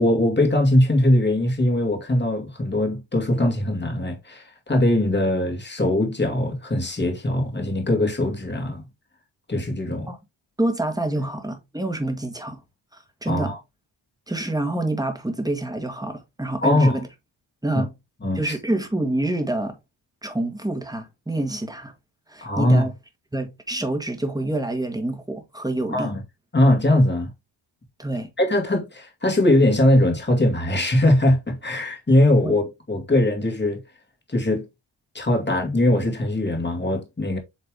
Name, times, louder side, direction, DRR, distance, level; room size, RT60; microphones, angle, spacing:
voice 1, 0.0-8.9 9.5-10.1 11.2-11.3 13.3-13.6 16.6-17.0 17.7-17.8 18.2-18.6 22.4-22.9 25.9-26.2 26.5-27.3 28.4-33.8 34.3-34.7 35.1-37.4, left 1 dB, 20° left, 2.2 m, -21 dB
voice 2, 10.6-12.6 12.9-13.6 14.3-17.1 17.6-17.9 18.4-19.8 20.2-21.9 22.3-22.9 23.3-26.1 28.0-28.3 32.4-32.5, right 1 dB, 10° right, 1.7 m, -27 dB
8.3 x 3.3 x 3.5 m
cardioid pair, 75°, 47 cm